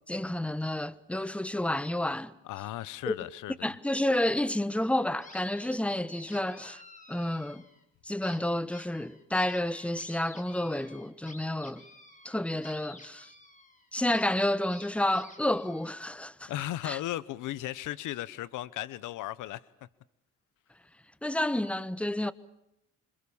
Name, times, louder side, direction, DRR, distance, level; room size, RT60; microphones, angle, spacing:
voice 1, 0.1-2.3 3.1-3.2 3.6-6.8 7.1-7.6 8.0-11.8 12.2-13.3 13.9-16.5 16.8-17.0 21.2-22.3, left 1 dB, 5° left, 1.2 m, -30 dB
voice 2, 2.4-3.7 16.5-19.7, left 14 dB, 90° left, 0.9 m, -36 dB
sound 1, 4.9-5.8 6.1-7.8 8.2-16.0, left 2 dB, 25° left, 4.8 m, -52 dB
26.5 x 26.5 x 7.1 m
cardioid pair, 90°, 30 cm